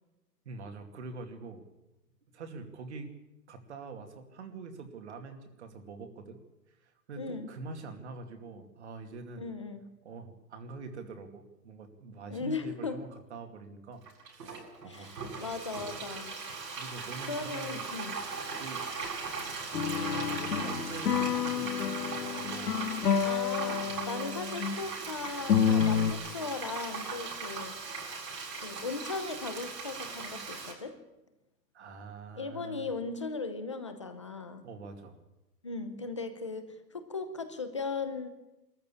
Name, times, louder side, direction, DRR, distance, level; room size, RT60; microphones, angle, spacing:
voice 1, 0.4-1.6 2.3-3.1 3.5-6.4 6.8-9.5 10.0-15.1 16.7-17.8 18.6-18.8 19.7-22.7 23.8-24.1 31.7-32.9 34.6-35.2, right 4 dB, 40° right, 6 dB, 2.6 m, -45 dB
voice 2, 7.2-7.5 9.4-9.8 12.3-13.0 14.9-16.4 17.3-18.2 23.2-27.8 28.6-30.9 32.4-34.7 35.6-38.3, left 4 dB, 20° left, 9 dB, 0.7 m, -38 dB
Frying (food), 14.1-30.7, right 4 dB, 75° right, 7.7 m, -39 dB
sound 1, 19.7-24.8 25.3-26.1, left 8 dB, 75° left, 2.1 m, -29 dB
21.5 x 14.0 x 8.7 m, 0.97 s
hypercardioid pair, 180°, 50 cm